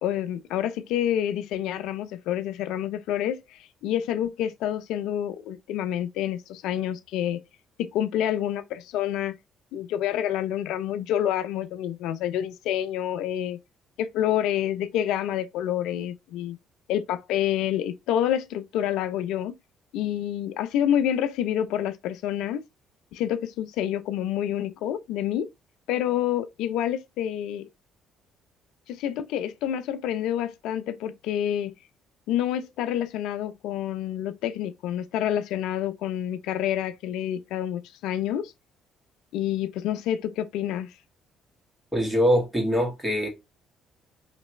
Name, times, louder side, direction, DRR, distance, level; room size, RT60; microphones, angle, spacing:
voice 1, 0.0-7.4 7.8-9.3 9.7-13.6 14.0-16.6 16.9-19.6 19.9-22.6 23.1-25.5 25.9-27.7 28.9-31.7 32.3-38.5 39.3-40.9, left 11 dB, 75° left, 0.3 m, -28 dB
voice 2, 41.9-43.3, equal, 10° right, 2.1 m, -23 dB
3.2 x 2.9 x 3.0 m
hypercardioid pair, 60°, 0 cm